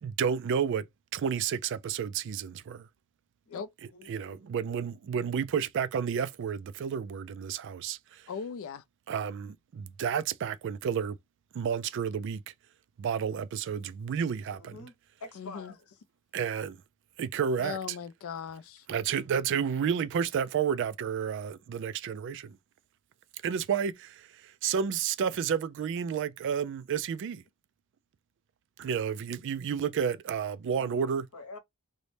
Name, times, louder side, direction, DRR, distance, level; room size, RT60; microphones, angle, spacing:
voice 1, 0.0-0.9 1.1-2.9 4.1-8.3 9.1-11.2 11.5-12.4 13.0-14.8 16.3-16.8 17.2-18.0 18.9-22.6 23.4-27.4 28.8-31.3, right 7 dB, 55° right, 0.3 m, -31 dB
voice 2, 3.5-4.4 14.5-14.9 15.2-16.0 30.8-31.6, left 3 dB, 90° left, 0.9 m, -47 dB
voice 3, 8.3-8.8 15.4-15.7 17.6-18.8, left 7 dB, 65° left, 0.4 m, -38 dB
3.9 x 2.1 x 3.2 m
head